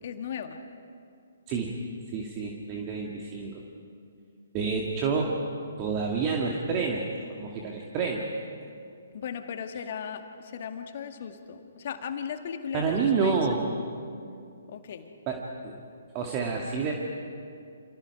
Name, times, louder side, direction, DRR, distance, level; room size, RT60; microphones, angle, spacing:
voice 1, 0.0-0.6 9.1-13.4 14.7-15.2, left 7 dB, 45° left, 6 dB, 1.9 m, -37 dB
voice 2, 2.1-3.6 4.5-5.4 5.8-8.3 12.7-13.6 15.3-15.7 16.1-16.9, right 5 dB, 25° right, 0 dB, 2.2 m, -28 dB
29.5 x 27.5 x 4.8 m, 2.4 s
figure-of-eight pair, 130°, 0 cm